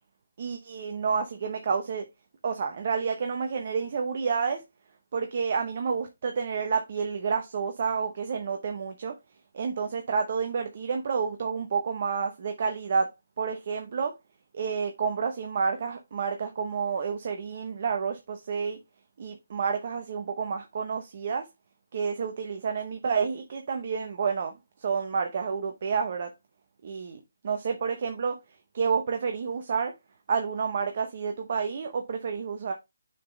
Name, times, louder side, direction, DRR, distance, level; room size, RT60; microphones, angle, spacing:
voice 1, 0.4-2.0 2.4-4.6 5.1-9.1 9.5-13.1 13.4-14.1 14.5-18.8 19.2-21.4 21.9-24.5 24.8-26.3 26.8-28.3 28.7-29.9 30.3-32.7, right 5 dB, 45° right, 0.9 m, -29 dB
6.5 x 3.9 x 3.9 m
hypercardioid pair, 160°, 0 cm